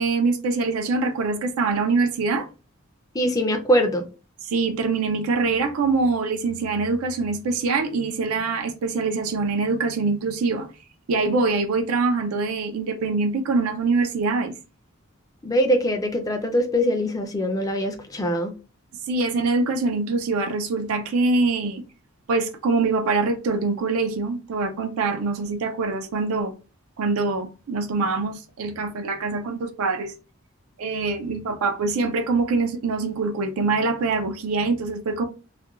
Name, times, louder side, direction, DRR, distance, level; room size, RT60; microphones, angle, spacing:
voice 1, 0.0-2.5 4.5-10.7 11.1-14.5 19.1-21.8 22.3-26.5 27.0-30.1 30.8-35.3, right 3 dB, 80° right, 0.4 m, -24 dB
voice 2, 3.1-4.0 15.4-18.5, equal, 15° left, 0.3 m, -22 dB
2.4 x 2.2 x 2.9 m
head